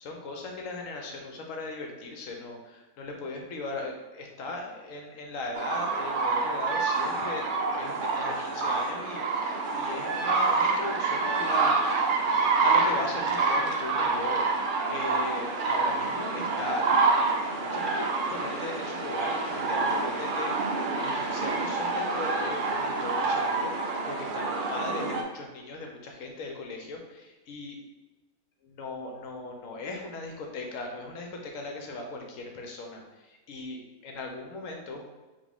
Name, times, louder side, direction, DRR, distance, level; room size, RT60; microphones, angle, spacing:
voice 1, 0.0-11.8 12.6-14.5 14.9-16.9 17.6-20.7 21.0-27.8 28.6-35.0, left 3 dB, 65° left, 2 dB, 1.1 m, -38 dB
sound 1, 5.5-25.2, right 3 dB, 85° right, 0.4 m, -27 dB
5.0 x 2.7 x 3.5 m, 1.2 s
omnidirectional pair, 1.6 m